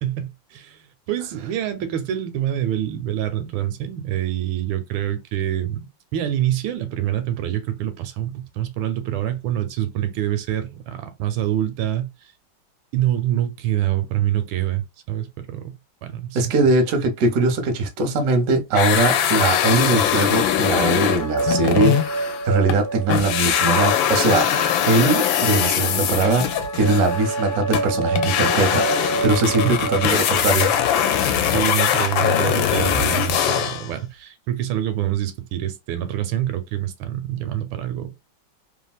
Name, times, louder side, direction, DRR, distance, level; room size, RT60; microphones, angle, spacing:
voice 1, 0.0-5.8 6.1-12.1 12.9-15.7 16.0-16.5 29.6-29.8 31.4-38.3, right 12 dB, 85° right, 1.4 m, -26 dB
voice 2, 16.3-30.7, right 3 dB, 65° right, 0.9 m, -21 dB
sound 1, 18.7-22.8 23.1-33.9, left 9 dB, 80° left, 1.3 m, -21 dB
sound 2, 21.2-24.4 24.8-30.0, right 3 dB, 15° right, 0.6 m, -28 dB
3.2 x 2.4 x 2.2 m
omnidirectional pair, 2.1 m